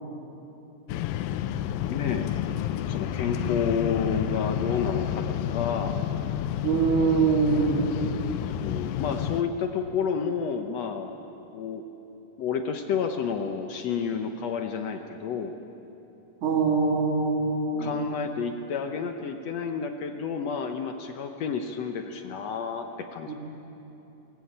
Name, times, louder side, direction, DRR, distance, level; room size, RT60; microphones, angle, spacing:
sound 1, 0.9-9.4, left 10 dB, 90° left, 2.5 m, -30 dB
voice 1, 1.9-2.3 2.9-6.0 8.6-11.1 11.5-11.8 12.4-15.5 17.8-22.9 23.1-23.3, left 6 dB, 65° left, 5 dB, 1.7 m, -30 dB
voice 2, 6.6-7.9 16.4-18.0 23.3-23.4, right 4 dB, 60° right, -3 dB, 4.8 m, -23 dB
22.0 x 18.5 x 8.8 m, 3.0 s
omnidirectional pair, 4.0 m